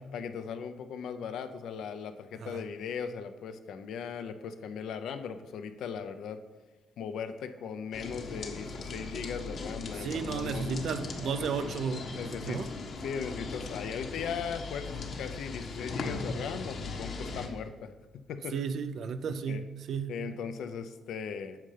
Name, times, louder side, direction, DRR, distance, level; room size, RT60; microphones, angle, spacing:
voice 1, 0.1-6.4 7.0-10.8 11.4-11.7 12.2-12.6 13.0-18.6 19.5-19.7 20.1-21.6, left 6 dB, 75° left, 0.6 m, -38 dB
sound 1, 7.9-17.5, left 3 dB, 60° left, 1.1 m, -39 dB
voice 2, 10.0-12.1 12.3-12.7 18.5-20.2, right 6 dB, 65° right, 0.5 m, -33 dB
9.1 x 6.5 x 3.3 m
cardioid pair, 90°, 0 cm